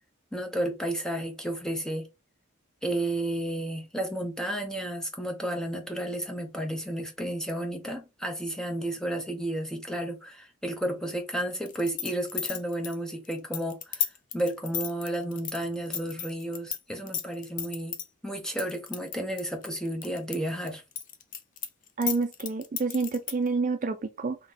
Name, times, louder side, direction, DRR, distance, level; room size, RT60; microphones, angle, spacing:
voice 1, 0.3-2.1 2.8-14.1 14.3-18.0 18.2-20.8, right 1 dB, 5° left, 0.7 m, -32 dB
sound 1, 11.7-16.8 17.1-18.0 18.6-20.4 20.7-23.5, left 9 dB, 40° left, 0.5 m, -33 dB
voice 2, 22.0-24.4, right 4 dB, 40° right, 0.4 m, -28 dB
3.6 x 2.9 x 3.9 m
head